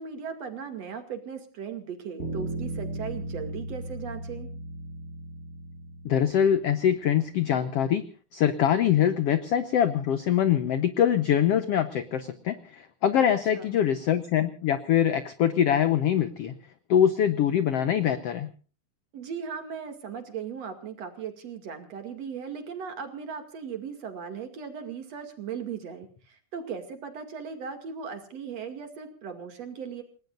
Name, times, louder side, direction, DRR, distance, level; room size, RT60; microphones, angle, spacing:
voice 1, 0.0-4.5 13.3-13.8 19.1-30.0, right 6 dB, 50° right, 6 dB, 3.2 m, -38 dB
Bass guitar, 2.2-6.6, right 2 dB, 15° left, 5.4 m, -36 dB
voice 2, 6.0-8.0 8.3-16.5 16.9-18.5, left 9 dB, 75° left, 12 dB, 1.4 m, -24 dB
29.0 x 18.5 x 2.5 m, 0.37 s
omnidirectional pair, 4.0 m